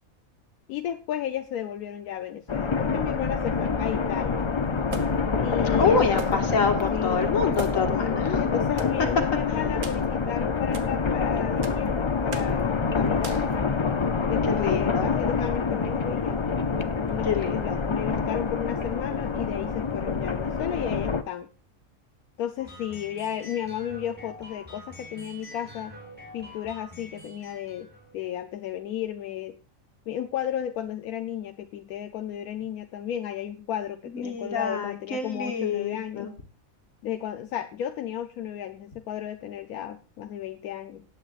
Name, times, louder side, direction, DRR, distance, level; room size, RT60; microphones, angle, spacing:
voice 1, 0.7-4.5 5.4-6.4 6.9-7.3 8.0-13.4 14.3-16.4 17.1-21.5 22.4-25.9 26.3-29.6 30.1-36.3 37.0-41.0, left 10 dB, 85° left, 8 dB, 1.2 m, -33 dB
sound 1, 2.5-21.2, left 5 dB, 45° left, 0.3 m, -26 dB
sound 2, 4.9-5.3 6.2-6.6 6.9-7.0 7.5-8.0 8.8-9.0 9.8-10.1 10.7-10.9 11.6-11.9 12.3-12.6 13.2-13.5, right 5 dB, 65° right, 1.5 m, -39 dB
voice 2, 5.8-8.4 14.4-15.1 17.2-17.8 34.1-36.3, left 5 dB, 65° left, 4 dB, 2.1 m, -27 dB
sound 3, 22.6-28.4, equal, 5° right, 5.8 m, -45 dB
18.5 x 8.8 x 2.5 m, 0.34 s
omnidirectional pair, 1.5 m